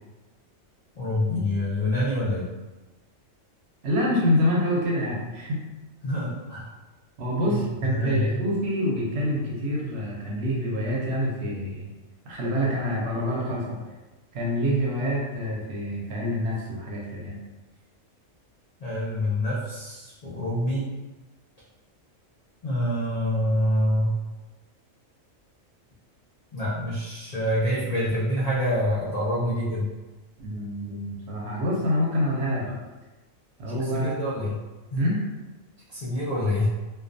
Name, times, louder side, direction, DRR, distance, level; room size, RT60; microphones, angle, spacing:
voice 1, 1.0-2.5 6.0-6.7 7.4-8.3 18.8-20.9 22.6-24.1 26.5-29.9 33.8-34.6 34.9-35.0 35.9-36.7, left 1 dB, 65° left, -8 dB, 0.3 m, -26 dB
voice 2, 3.8-5.6 7.2-11.9 12.3-13.8 14.3-17.4 30.4-32.8 33.6-34.2 34.9-35.2, equal, 65° right, -4 dB, 0.8 m, -26 dB
2.3 x 2.2 x 2.5 m, 1.1 s
omnidirectional pair, 1.4 m